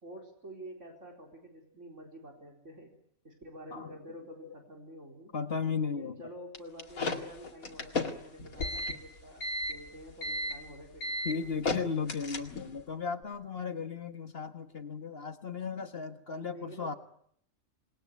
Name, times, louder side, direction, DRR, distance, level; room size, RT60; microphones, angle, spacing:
voice 1, 0.0-3.0 3.2-5.3 5.7-11.5 16.3-17.0, equal, 60° right, 1 dB, 4.6 m, -48 dB
voice 2, 5.3-6.2 11.3-16.9, left 5 dB, 45° left, 8 dB, 1.7 m, -35 dB
sound 1, 6.5-12.8, left 2 dB, 85° left, 2.7 m, -34 dB
27.5 x 20.0 x 9.5 m, 0.68 s
omnidirectional pair, 1.5 m